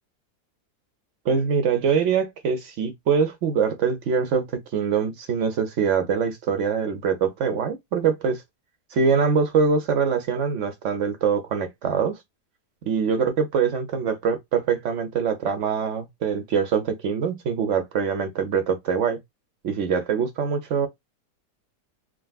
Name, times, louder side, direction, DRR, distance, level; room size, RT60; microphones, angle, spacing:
voice 1, 1.2-4.5 4.7-8.4 8.9-12.2 12.9-19.2 19.6-20.9, right 6 dB, 65° right, 0.7 m, -23 dB
3.7 x 2.3 x 2.3 m
omnidirectional pair, 1.7 m